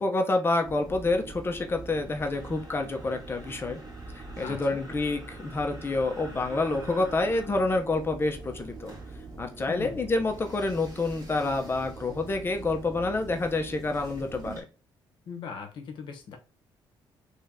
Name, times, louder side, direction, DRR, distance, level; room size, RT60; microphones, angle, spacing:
voice 1, 0.0-3.8 4.4-8.9 9.4-14.6, left 2 dB, 25° left, 0.7 m, -28 dB
sound 1, 0.6-14.6, right 2 dB, 40° right, 1.7 m, -43 dB
voice 2, 4.4-4.8 9.7-10.1 15.3-16.4, left 6 dB, 65° left, 0.9 m, -40 dB
3.2 x 2.8 x 3.5 m
cardioid pair, 105°, 9 cm